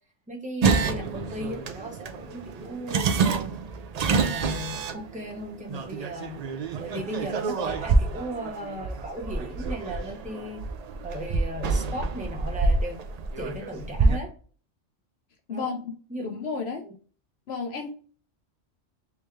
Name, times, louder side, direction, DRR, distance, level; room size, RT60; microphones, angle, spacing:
voice 1, 0.3-3.5 4.2-6.4 6.8-10.6 11.0-13.0 13.4-14.3 15.5-15.8 16.1-16.4 16.8-16.9, equal, 5° right, -1 dB, 1.0 m, -36 dB
sound 1, 0.6-14.2, right 4 dB, 70° right, 0.3 m, -27 dB
voice 2, 15.5-15.9 16.2-16.9 17.5-17.9, left 5 dB, 65° left, 4 dB, 0.9 m, -32 dB
3.4 x 3.2 x 3.2 m, 0.41 s
omnidirectional pair, 1.2 m